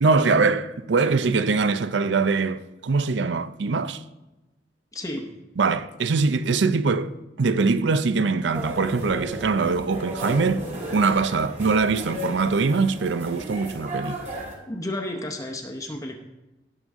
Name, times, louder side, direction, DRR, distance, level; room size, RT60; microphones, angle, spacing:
voice 1, 0.0-4.0 5.6-10.7 10.9-14.2, right 4 dB, 75° right, 0.5 m, -22 dB
voice 2, 4.9-5.3 14.7-16.2, left 1 dB, 20° left, 0.8 m, -32 dB
sound 1, 8.5-14.5, right 1 dB, 40° right, 2.4 m, -35 dB
17.5 x 6.7 x 3.6 m
head